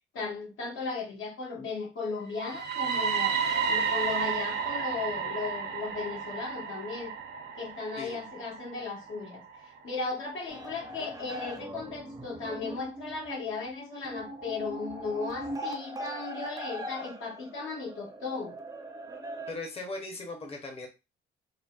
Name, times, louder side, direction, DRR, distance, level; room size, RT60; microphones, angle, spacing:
voice 1, 0.1-3.4 3.7-7.1 7.6-18.5, left 4 dB, 80° left, -2 dB, 1.3 m, -36 dB
sound 1, 2.3-10.2, right 6 dB, 60° right, 0.7 m, -32 dB
sound 2, 10.5-19.5, equal, 20° right, 0.6 m, -40 dB
voice 2, 19.5-20.9, left 2 dB, 30° left, 3 dB, 0.7 m, -38 dB
3.9 x 2.0 x 2.4 m, 0.28 s
cardioid pair, 90°, 20 cm